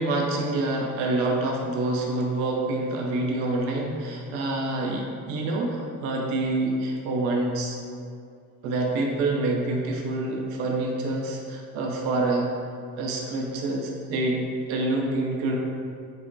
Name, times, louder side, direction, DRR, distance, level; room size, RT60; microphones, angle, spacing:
voice 1, 0.0-7.8 8.6-12.5 13.0-15.6, right 2 dB, 75° right, -1 dB, 0.6 m, -27 dB
5.3 x 2.1 x 2.6 m, 2.3 s
hypercardioid pair, 40°, 45 cm